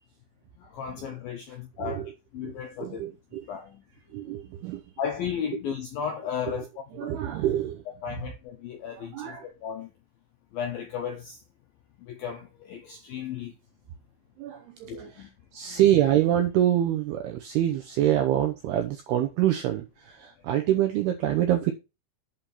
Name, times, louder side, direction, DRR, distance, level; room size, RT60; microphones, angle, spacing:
voice 1, 0.6-2.0 2.3-3.0 3.5-3.8 4.3-4.4 5.0-7.2 8.0-9.9 10.5-11.4 12.0-13.5 14.9-15.3 15.6-15.8, left 8 dB, 80° left, 2.1 m, -35 dB
voice 2, 1.8-2.1 2.4-2.5 2.8-3.5 4.1-4.8 6.5-6.6 6.9-7.8 9.0-9.5 14.4-21.7, right 12 dB, 85° right, 2.3 m, -26 dB
8.0 x 4.4 x 6.7 m
omnidirectional pair, 5.5 m